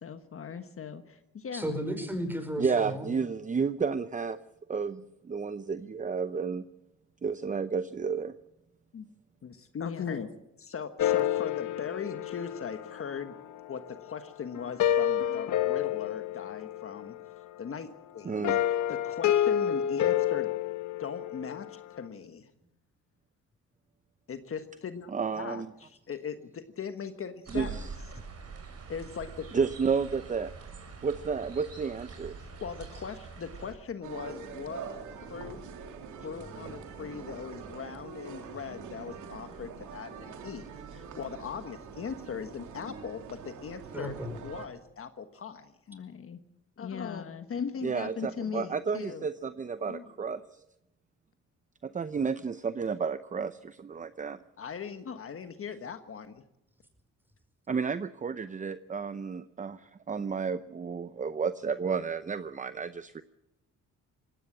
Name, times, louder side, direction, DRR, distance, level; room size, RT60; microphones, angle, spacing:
voice 1, 0.0-1.8 8.9-9.1 9.4-10.3 10.6-13.3 13.7-17.1 17.6-18.5 18.9-20.5 21.0-22.5 24.3-27.9 28.9-29.5 32.4-34.9 35.3-35.6 36.2-40.7 40.9-46.4 46.8-49.3 49.9-50.1 54.6-56.4, left 6 dB, 45° left, 9 dB, 1.4 m, -39 dB
voice 2, 1.5-3.1 43.9-44.4, equal, 5° right, 7 dB, 5.3 m, -34 dB
voice 3, 2.6-4.4 4.7-6.6 7.2-8.3 18.2-18.6 25.1-25.7 27.5-27.9 29.5-30.5 31.0-32.4 47.8-50.6 51.8-54.4 57.7-63.2, right 5 dB, 25° right, 12 dB, 0.7 m, -31 dB
sound 1, 11.0-14.0 14.5-17.3 18.4-21.7, left 11 dB, 75° left, 1.3 m, -29 dB
small stream in woods, 27.5-33.7, right 5 dB, 55° right, 5.7 m, -44 dB
sound 2, 34.0-44.7, right 6 dB, 80° right, 2.9 m, -44 dB
19.5 x 16.5 x 8.6 m, 0.90 s
cardioid pair, 90°, 30 cm